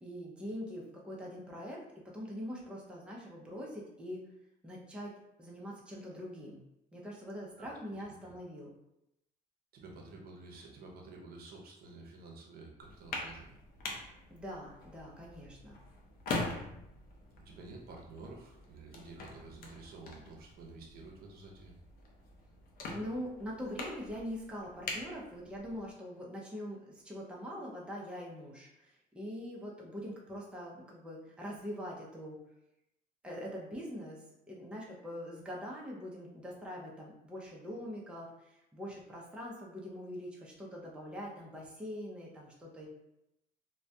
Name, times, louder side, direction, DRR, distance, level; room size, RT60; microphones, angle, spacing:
voice 1, 0.0-4.2 4.6-5.1 5.4-6.6 6.9-8.7 14.3-15.8 22.9-32.4 33.2-42.9, equal, 5° right, -3 dB, 0.5 m, -43 dB
voice 2, 9.7-13.5 17.3-21.7, right 3 dB, 65° right, 0 dB, 0.6 m, -50 dB
sound 1, 12.8-25.9, left 2 dB, 60° left, 0.5 m, -44 dB
2.2 x 2.1 x 2.6 m, 0.84 s
cardioid pair, 110°, 17 cm